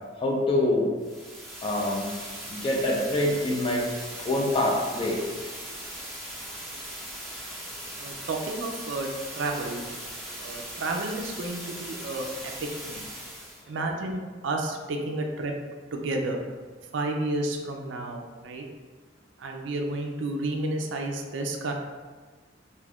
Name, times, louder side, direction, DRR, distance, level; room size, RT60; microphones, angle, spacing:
voice 1, 0.2-0.9 1.6-2.1 2.5-3.9 4.2-5.2, left 1 dB, 25° left, -1 dB, 0.4 m, -25 dB
sound 1, 1.0-13.6, right 1 dB, ahead, 0.8 m, -39 dB
voice 2, 8.0-9.1 9.4-9.8 10.4-12.3 12.6-13.1 13.7-15.5 15.9-16.4 16.9-18.7 19.4-21.7, right 2 dB, 70° right, 2 dB, 0.4 m, -31 dB
2.5 x 2.4 x 3.4 m, 1.4 s
head